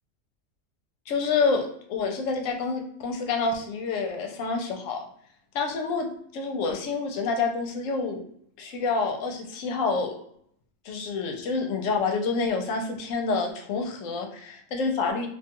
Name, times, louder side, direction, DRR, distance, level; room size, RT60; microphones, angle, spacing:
voice 1, 1.1-5.0 5.5-8.2 8.6-10.2 10.8-15.3, left 4 dB, 80° left, 3 dB, 0.9 m, -28 dB
2.4 x 2.3 x 2.8 m, 0.64 s
omnidirectional pair, 1.3 m